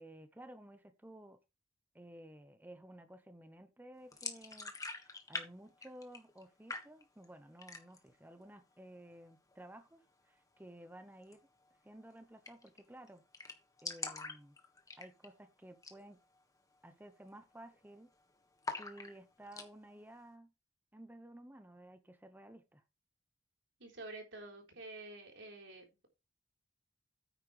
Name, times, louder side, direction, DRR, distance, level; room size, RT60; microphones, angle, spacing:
voice 1, 0.0-1.4 1.9-11.4 11.8-13.2 13.8-14.6 15.0-16.2 16.8-18.1 18.8-20.5 20.9-22.8, right 1 dB, 10° right, 0.9 m, -54 dB
sound 1, 4.1-5.5 5.7-6.4 6.7-7.3 7.6-8.1 8.5-8.6 8.9-9.5 11.2-11.4 11.7-11.8 12.0-12.1 12.4-12.8 13.1-13.2 13.3-15.4 15.7-16.0 16.4-16.5 17.0-17.3 17.5-18.1 18.6-19.7, left 3 dB, 20° left, 1.5 m, -44 dB
voice 2, 23.8-26.1, right 2 dB, 80° right, 3.9 m, -49 dB
9.5 x 9.1 x 3.2 m
head